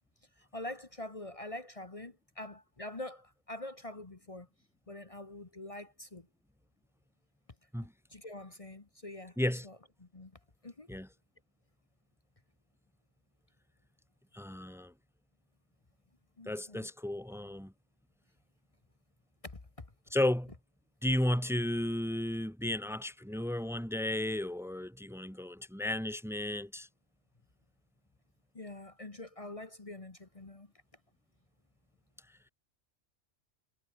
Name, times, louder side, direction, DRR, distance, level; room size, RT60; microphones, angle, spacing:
voice 1, 0.4-4.5 4.9-6.3 8.1-9.4 9.6-10.3 10.6-10.9 16.4-16.9 19.4-19.9 28.5-30.7, left 1 dB, 30° left, 1.4 m, -45 dB
voice 2, 14.3-14.9 16.5-17.7 20.1-20.5 21.0-26.9, left 1 dB, 5° right, 0.8 m, -33 dB
omnidirectional pair, 1.2 m